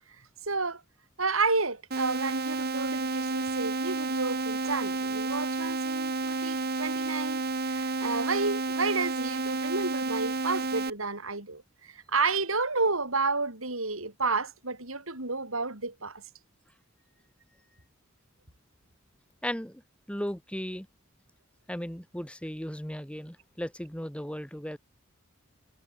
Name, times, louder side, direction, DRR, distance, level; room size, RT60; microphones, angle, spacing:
voice 1, 0.4-0.8 1.2-16.2, right 3 dB, 70° right, 7.1 m, -31 dB
sound 1, 1.9-10.9, right 3 dB, 50° right, 1.6 m, -31 dB
voice 2, 19.4-19.8 20.1-20.9 21.7-24.8, equal, 5° left, 6.3 m, -36 dB
head